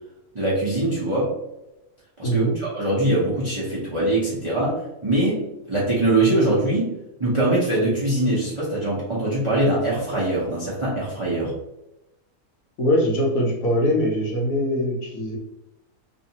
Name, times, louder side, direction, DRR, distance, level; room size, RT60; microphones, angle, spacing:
voice 1, 0.3-1.3 2.2-11.5, right 1 dB, 35° right, -8 dB, 0.5 m, -23 dB
voice 2, 2.2-2.5 12.8-15.4, equal, 65° left, -1 dB, 1.0 m, -22 dB
2.6 x 2.4 x 2.7 m, 0.93 s
omnidirectional pair, 1.6 m